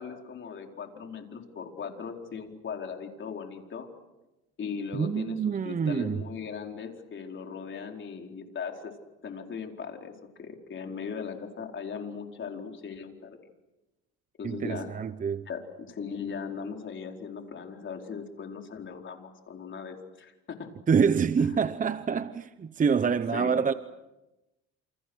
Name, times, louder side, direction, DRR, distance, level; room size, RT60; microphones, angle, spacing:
voice 1, 0.0-3.9 4.6-8.9 9.2-10.1 10.4-13.4 14.4-14.9 15.5-20.7 23.1-23.6, left 6 dB, 40° left, 4.5 m, -38 dB
voice 2, 4.9-6.3 14.4-15.5 20.9-23.7, right 6 dB, 25° right, 0.8 m, -26 dB
29.0 x 29.0 x 6.4 m
cardioid pair, 105°, 29 cm